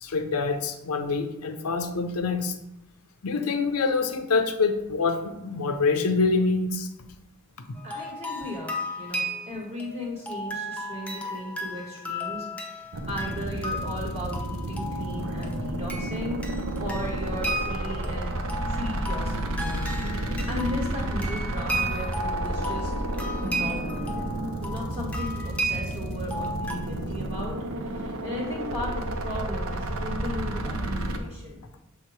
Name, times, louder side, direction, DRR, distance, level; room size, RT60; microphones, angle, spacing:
voice 1, 0.0-2.6 3.2-6.9, left 4 dB, 80° left, 7 dB, 0.6 m, -25 dB
sound 1, 7.8-26.8, equal, 5° left, 0.6 m, -35 dB
voice 2, 7.8-22.9 23.4-24.1 24.6-31.6, left 1 dB, 30° right, -5 dB, 1.3 m, -36 dB
sound 2, 12.9-31.2, right 1 dB, 65° right, 0.6 m, -31 dB
7.0 x 2.9 x 4.7 m, 0.89 s
head